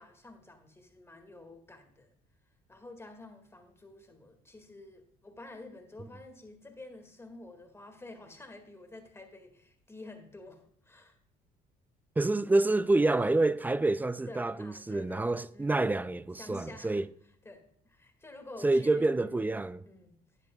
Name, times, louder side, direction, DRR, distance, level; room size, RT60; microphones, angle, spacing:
voice 1, 0.0-2.1 2.7-11.2 14.3-15.9 16.3-19.6 19.9-20.2, left 2 dB, 15° left, 1.9 m, -50 dB
voice 2, 12.2-17.0 18.6-19.8, right 2 dB, 10° right, 0.3 m, -27 dB
12.0 x 9.7 x 2.3 m
cardioid pair, 110°, 17 cm